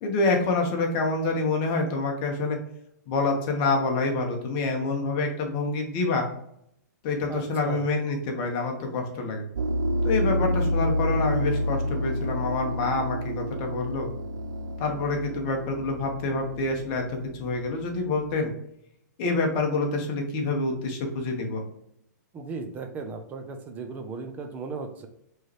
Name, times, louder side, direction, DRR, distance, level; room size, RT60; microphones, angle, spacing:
voice 1, 0.0-2.6 3.1-6.3 7.0-9.5 10.0-14.1 14.8-18.5 19.2-21.6, left 3 dB, 35° left, 2 dB, 1.1 m, -27 dB
voice 2, 7.3-7.9 22.3-25.1, right 4 dB, 15° right, 6 dB, 0.5 m, -36 dB
sound 1, 9.6-18.3, equal, 85° right, 0.4 m, -29 dB
4.6 x 3.1 x 3.0 m, 0.74 s
hypercardioid pair, 155°, 10 cm